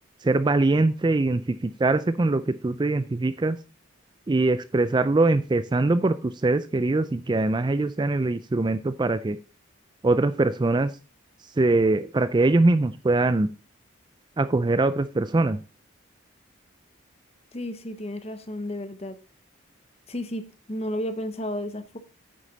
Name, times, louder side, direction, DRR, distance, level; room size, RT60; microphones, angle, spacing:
voice 1, 0.2-3.6 4.3-9.4 10.0-10.9 11.6-13.5 14.4-15.6, right 2 dB, 20° right, 0.3 m, -22 dB
voice 2, 17.5-19.2 20.1-22.0, left 1 dB, 30° left, 0.9 m, -32 dB
9.2 x 6.6 x 4.0 m
head